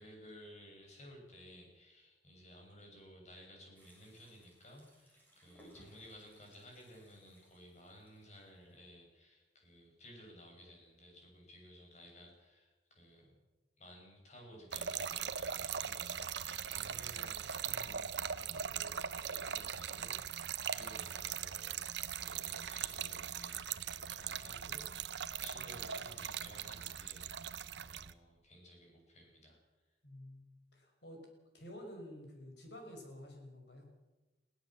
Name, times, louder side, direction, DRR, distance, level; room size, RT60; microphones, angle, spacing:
voice 1, 0.0-13.4 13.8-29.6, equal, 40° left, 1 dB, 7.2 m, -56 dB
sound 1, 3.7-8.8, equal, 10° left, 7.4 m, -64 dB
Trickle dribble / Fill (with liquid), 14.7-28.1, right 8 dB, 80° right, 0.8 m, -40 dB
voice 2, 30.0-30.4 30.7-31.2 31.5-33.9, equal, 70° left, 3 dB, 5.9 m, -50 dB
22.5 x 16.5 x 7.6 m, 1.1 s
head